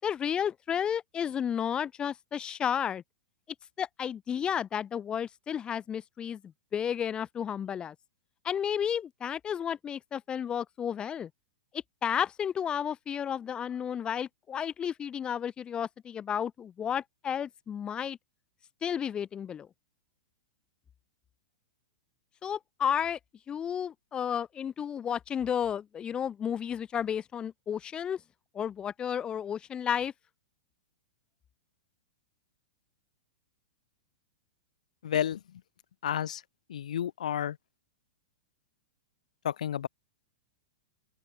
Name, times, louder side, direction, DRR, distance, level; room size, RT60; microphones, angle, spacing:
voice 1, 0.0-3.0 3.8-7.9 8.4-11.3 12.0-18.2 18.8-19.7 22.4-23.2 23.5-28.2 28.5-30.1, left 8 dB, 25° left, 4.8 m, -32 dB
voice 2, 35.0-35.6 36.0-36.4 36.7-37.6 39.4-39.9, left 10 dB, 70° left, 3.3 m, -31 dB
open air
hypercardioid pair, 110°, 4 cm